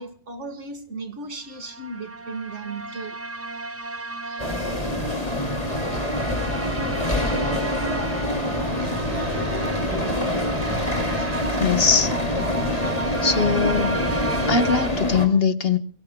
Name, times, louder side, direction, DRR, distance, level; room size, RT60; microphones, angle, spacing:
voice 1, 0.0-3.2 4.3-4.5, right 3 dB, 65° right, 2.1 m, -36 dB
sound 1, 1.5-14.9, right 3 dB, 15° right, 0.6 m, -33 dB
sound 2, 4.4-15.3, left 1 dB, 30° left, 3.1 m, -26 dB
sound 3, 7.2-14.6, right 3 dB, 40° right, 1.3 m, -38 dB
voice 2, 11.5-12.1 13.2-14.0 14.5-15.8, left 5 dB, 50° left, 1.4 m, -21 dB
29.0 x 19.5 x 2.3 m
omnidirectional pair, 1.3 m